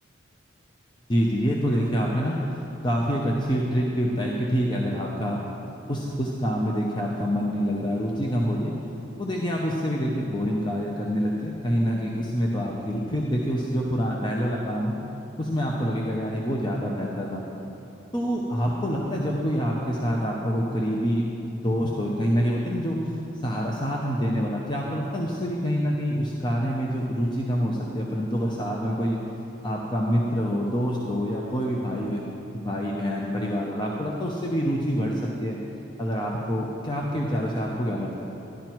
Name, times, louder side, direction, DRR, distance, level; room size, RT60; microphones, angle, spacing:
voice 1, 1.1-2.4 2.8-5.4 5.9-8.7 9.2-15.0 15.4-17.4 18.1-21.2 21.5-23.0 23.4-29.2 29.6-32.2 32.5-35.6 36.0-38.2, equal, 20° left, -2 dB, 0.8 m, -26 dB
12.5 x 11.5 x 4.6 m, 2.9 s
head